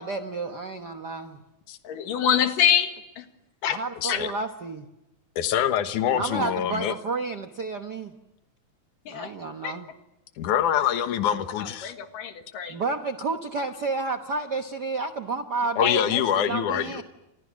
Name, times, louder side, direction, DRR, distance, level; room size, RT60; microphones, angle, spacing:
voice 1, 0.0-1.4 3.7-4.9 6.1-8.1 9.1-9.9 12.7-17.0, right 3 dB, 65° right, 6 dB, 1.0 m, -31 dB
voice 2, 1.8-3.2 3.6-3.8 4.1-4.2 9.1-9.3 9.6-9.8 11.6-12.8 15.8-16.0, left 9 dB, 85° left, 7 dB, 3.4 m, -25 dB
voice 3, 4.0-4.3 5.4-6.9 10.4-11.9 15.8-17.0, left 10 dB, 70° left, 9 dB, 2.7 m, -25 dB
29.5 x 27.0 x 6.4 m, 0.93 s
omnidirectional pair, 3.7 m